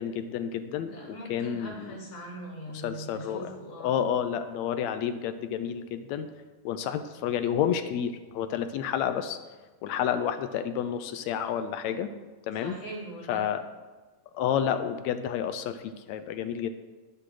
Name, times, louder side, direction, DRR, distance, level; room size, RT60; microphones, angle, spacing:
voice 1, 0.0-2.0 2.7-3.6 3.8-6.3 6.7-9.4 9.8-12.1 12.5-12.8 13.3-13.6 14.3-16.7, left 9 dB, 75° left, 10 dB, 1.8 m, -30 dB
voice 2, 0.8-4.0 12.6-13.4, right 1 dB, 50° left, -2 dB, 3.9 m, -41 dB
10.5 x 10.0 x 4.8 m, 1.3 s
omnidirectional pair, 3.5 m